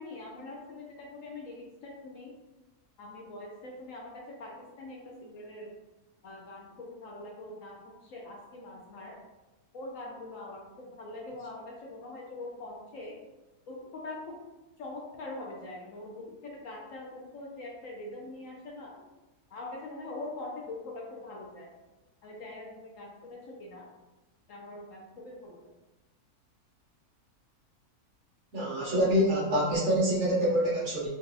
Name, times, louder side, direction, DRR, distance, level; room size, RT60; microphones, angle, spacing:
voice 1, 0.0-2.3 3.0-5.7 6.2-9.2 9.7-13.2 13.7-14.3 14.8-18.9 19.5-21.7 22.2-23.9 24.5-25.6, left 2 dB, 65° left, -2 dB, 0.9 m, -43 dB
voice 2, 28.5-31.1, equal, 55° right, -5 dB, 1.0 m, -26 dB
3.9 x 2.2 x 2.6 m, 1.1 s
omnidirectional pair, 1.6 m